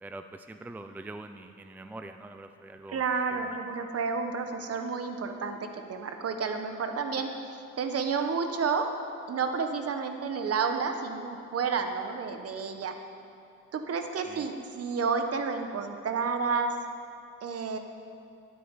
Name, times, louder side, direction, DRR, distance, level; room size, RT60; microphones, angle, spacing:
voice 1, 0.0-3.0 3.3-3.6 14.3-14.5, right 2 dB, 5° right, 8 dB, 0.5 m, -44 dB
voice 2, 2.9-8.9 9.3-12.9 13.7-16.8 17.4-17.8, right 5 dB, 50° right, 6 dB, 1.3 m, -30 dB
9.4 x 8.9 x 8.9 m, 2.5 s
cardioid pair, 90°, 30 cm